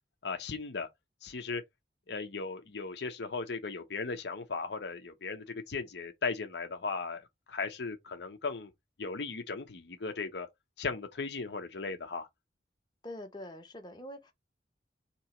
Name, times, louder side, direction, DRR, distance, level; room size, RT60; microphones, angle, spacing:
voice 1, 0.2-0.9 1.2-1.6 2.1-8.7 9.0-10.5 10.8-12.3, left 4 dB, 75° left, 0.8 m, -37 dB
voice 2, 13.0-14.3, left 1 dB, 25° left, 0.8 m, -44 dB
3.0 x 2.9 x 4.3 m
head